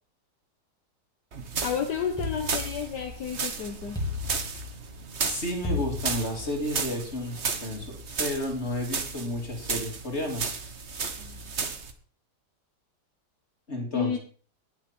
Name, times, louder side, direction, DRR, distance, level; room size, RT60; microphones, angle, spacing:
sound 1, 1.3-11.9, right 4 dB, 40° right, 1.5 m, -34 dB
voice 1, 1.6-4.0 13.9-14.2, left 7 dB, 70° left, 4 dB, 1.8 m, -31 dB
sound 2, 2.2-3.3 3.9-5.0 5.6-6.8, left 4 dB, ahead, 2.8 m, -34 dB
voice 2, 5.2-10.5 13.7-14.2, left 1 dB, 35° left, 1 dB, 3.4 m, -32 dB
19.5 x 7.4 x 4.5 m, 0.42 s
omnidirectional pair, 1.9 m